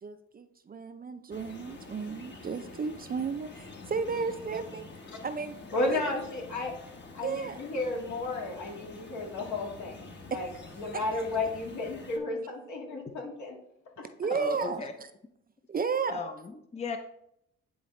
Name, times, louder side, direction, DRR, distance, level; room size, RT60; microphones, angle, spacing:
voice 1, 0.0-4.8 5.2-6.0 7.2-7.6 10.3-10.4 10.9-11.0 14.2-14.8 15.7-16.2, right 5 dB, 30° right, 9 dB, 0.5 m, -33 dB
sound 1, 1.3-12.2, left 3 dB, 35° left, 1.2 m, -47 dB
voice 2, 5.7-6.7 7.1-10.1 10.3-10.5 10.8-13.6, left 2 dB, 70° left, 0 dB, 1.9 m, -33 dB
voice 3, 14.3-14.9 16.1-17.0, left 3 dB, 20° left, 7 dB, 0.6 m, -36 dB
9.3 x 3.9 x 3.2 m, 0.75 s
cardioid pair, 90°, 30 cm